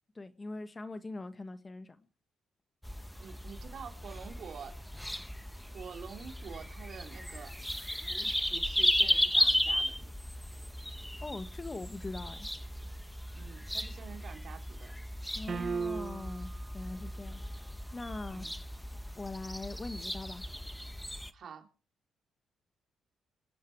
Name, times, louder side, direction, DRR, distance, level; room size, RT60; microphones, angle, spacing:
voice 1, 0.1-2.0 11.2-12.5 15.3-17.4 17.9-18.5 19.2-20.4, left 2 dB, 25° left, 1.5 m, -42 dB
sound 1, 2.8-21.3, equal, 5° left, 1.2 m, -35 dB
voice 2, 3.2-4.7 5.7-7.5 8.0-10.1 13.3-15.0 18.3-18.6 21.3-21.7, right 7 dB, 60° right, 3.2 m, -47 dB
sound 2, 15.5-16.5, right 5 dB, 45° right, 1.0 m, -35 dB
26.0 x 9.4 x 4.7 m
cardioid pair, 90°, 0 cm